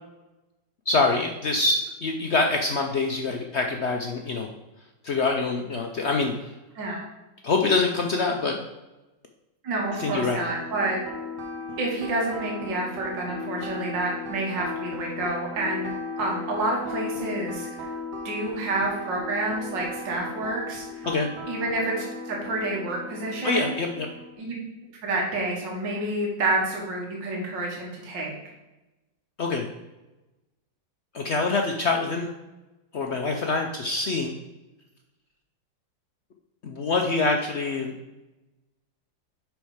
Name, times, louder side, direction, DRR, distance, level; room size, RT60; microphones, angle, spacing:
voice 1, 0.9-4.5 5.0-6.3 7.4-8.6 10.0-10.4 21.1-21.3 23.4-24.1 29.4-29.7 31.1-32.3 32.9-34.3 36.6-37.9, left 3 dB, 65° left, 2 dB, 0.6 m, -25 dB
voice 2, 9.6-11.0 11.8-15.9 16.2-17.9 18.2-21.1 21.5-23.8 24.4-24.5 25.0-28.3, right 2 dB, 80° right, -1 dB, 2.1 m, -29 dB
sound 1, 9.8-24.4, left 2 dB, 65° right, 1.6 m, -36 dB
6.3 x 5.4 x 4.9 m, 1.0 s
omnidirectional pair, 1.9 m